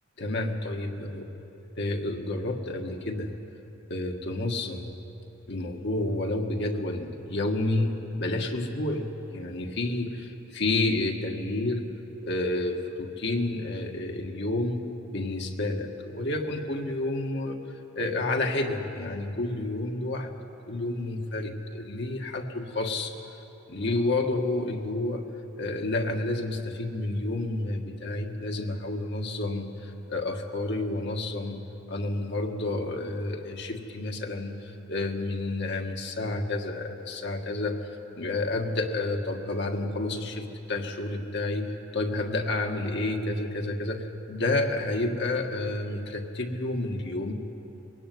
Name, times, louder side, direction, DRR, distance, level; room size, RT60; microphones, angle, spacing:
voice 1, 0.2-1.3 1.8-3.3 3.9-5.0 5.5-11.8 12.2-17.6 17.9-20.3 20.7-23.2 23.7-25.2 25.6-31.6 31.9-37.9 38.2-47.3, left 2 dB, 65° left, 3 dB, 1.7 m, -30 dB
22.0 x 17.0 x 9.4 m, 3.0 s
head